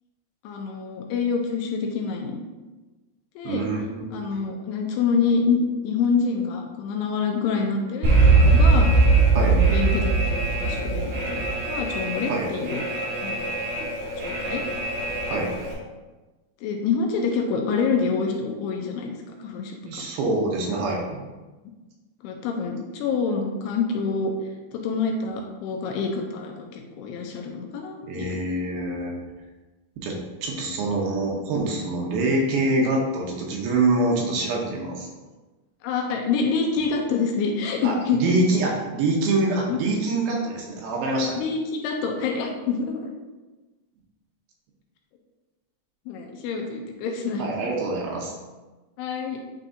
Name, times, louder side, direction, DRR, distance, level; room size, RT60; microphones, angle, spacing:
voice 1, 0.4-2.4 3.4-3.7 4.1-9.0 9.3-12.8 13.2-13.5 14.2-14.6 16.6-20.1 22.2-24.3 24.7-28.4 35.8-38.4 39.7-39.8 41.3-43.1 46.1-47.5 49.0-49.4, left 5 dB, 80° left, 2 dB, 2.6 m, -27 dB
voice 2, 3.4-4.3 9.4-9.6 12.3-12.5 15.3-15.5 19.9-21.2 28.1-29.1 30.0-35.1 37.8-41.4 47.4-48.3, right 2 dB, 75° right, -1 dB, 2.4 m, -25 dB
Alarm, 8.0-15.7, right 3 dB, 60° right, 3.8 m, -21 dB
9.1 x 4.1 x 2.7 m, 1.2 s
omnidirectional pair, 5.0 m